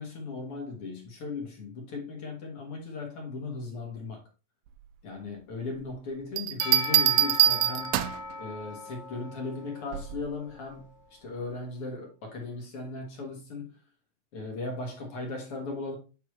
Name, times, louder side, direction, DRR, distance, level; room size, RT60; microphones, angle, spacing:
voice 1, 0.0-4.2 5.0-8.0 8.4-13.7 14.3-16.0, left 3 dB, 50° left, 1.9 m, -37 dB
sound 1, 6.4-8.3 9.9-10.3, right 13 dB, 80° right, 2.0 m, -24 dB
Percussion / Church bell, 6.6-10.8, left 3 dB, 35° left, 1.9 m, -39 dB
8.3 x 4.4 x 3.1 m
omnidirectional pair, 4.1 m